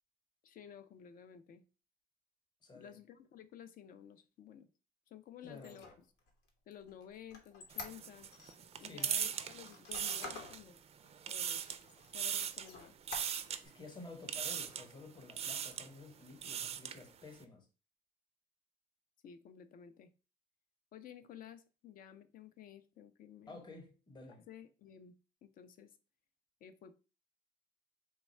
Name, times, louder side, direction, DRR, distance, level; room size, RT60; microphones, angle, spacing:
voice 1, 0.4-1.6 2.7-4.7 5.1-5.9 6.7-8.4 8.8-10.8 11.3-11.6 12.1-13.0 19.2-20.1 20.9-23.6 24.5-25.1 25.4-26.0 26.6-26.9, left 9 dB, 55° left, 0.5 m, -54 dB
voice 2, 2.6-3.0 5.4-5.8 8.8-9.1 13.6-17.7 23.5-24.5, left 3 dB, 25° left, 0.9 m, -52 dB
Squeak, 5.5-8.5 9.0-10.6 11.1-11.2 11.6-12.2 12.6-13.7, left 3 dB, 85° left, 1.0 m, -48 dB
sound 1, 7.7-10.8 11.1-11.8 12.1-12.7 13.1-13.6 14.3-14.9 15.3-15.9 16.3-17.0, right 8 dB, 35° right, 0.4 m, -39 dB
3.2 x 2.2 x 4.2 m
cardioid pair, 110°, 17 cm